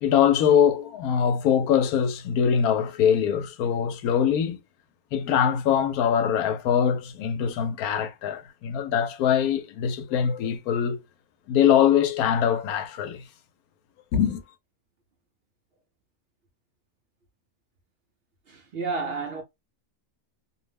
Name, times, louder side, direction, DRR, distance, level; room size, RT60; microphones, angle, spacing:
voice 1, 0.0-4.6 5.1-11.0 11.5-13.2 14.1-14.4, left 8 dB, 85° left, 1.1 m, -23 dB
voice 2, 18.5-19.4, right 4 dB, 55° right, 0.8 m, -31 dB
2.7 x 2.1 x 3.2 m
omnidirectional pair, 1.5 m